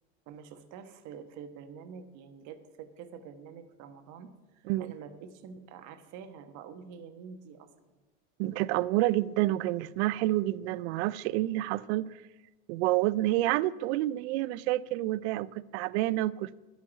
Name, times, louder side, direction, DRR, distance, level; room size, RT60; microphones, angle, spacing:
voice 1, 0.3-7.7, right 7 dB, 60° right, 9 dB, 1.3 m, -47 dB
voice 2, 8.4-12.1 12.7-16.6, right 16 dB, 85° right, 20 dB, 0.5 m, -29 dB
12.0 x 5.9 x 9.0 m, 1.2 s
supercardioid pair, 125°, 32 cm